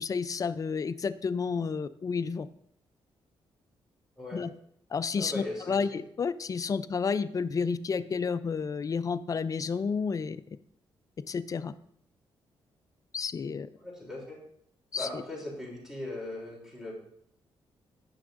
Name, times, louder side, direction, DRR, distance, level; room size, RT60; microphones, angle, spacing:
voice 1, 0.0-2.5 4.3-4.5 4.9-10.4 11.3-11.7 13.1-13.7 14.9-15.1, left 5 dB, 35° left, 13 dB, 0.4 m, -31 dB
voice 2, 5.2-5.8 13.8-14.4 14.9-17.0, left 1 dB, 5° right, -3 dB, 3.0 m, -39 dB
9.4 x 6.0 x 2.5 m, 0.69 s
cardioid pair, 75°, 10 cm